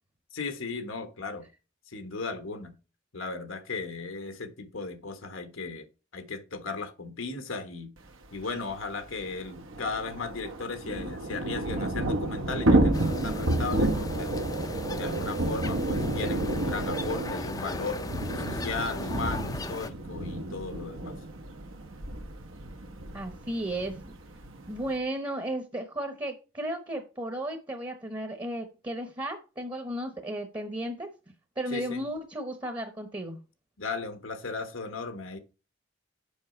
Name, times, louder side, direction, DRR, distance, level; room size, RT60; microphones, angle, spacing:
voice 1, 0.3-1.5 1.9-2.7 3.1-5.8 6.1-7.9 8.3-14.5 14.9-18.1 18.3-21.2 31.7-32.0 33.8-35.4, left 4 dB, 90° left, 1.3 m, -36 dB
Thunder / Rain, 8.4-8.5 8.7-8.8 9.1-25.0, right 1 dB, 85° right, 1.2 m, -30 dB
sound 1, 12.9-19.9, left 2 dB, 20° left, 0.4 m, -38 dB
voice 2, 23.1-24.2 24.7-31.1 31.6-33.4, right 1 dB, 20° right, 0.8 m, -34 dB
7.3 x 5.7 x 4.3 m
head